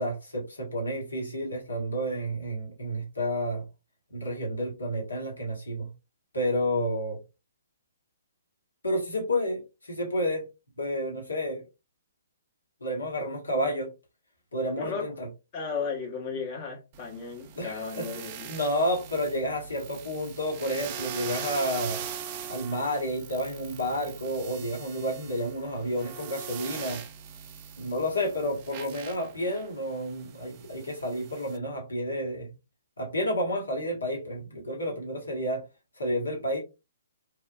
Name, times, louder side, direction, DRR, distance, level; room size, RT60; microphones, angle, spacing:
voice 1, 0.0-3.6 4.1-5.9 6.3-7.2 8.8-10.4 10.8-11.6 12.8-13.9 14.5-15.3 17.6-18.1 18.5-22.0 22.5-27.0 27.8-32.5 33.0-35.6 36.0-36.6, equal, 80° left, 1.4 m, -30 dB
voice 2, 14.8-15.1 15.5-18.5, left 5 dB, 35° left, 1.0 m, -35 dB
sound 1, 16.9-31.6, right 8 dB, 35° right, 0.4 m, -41 dB
3.3 x 2.3 x 2.3 m
figure-of-eight pair, 125°, 0 cm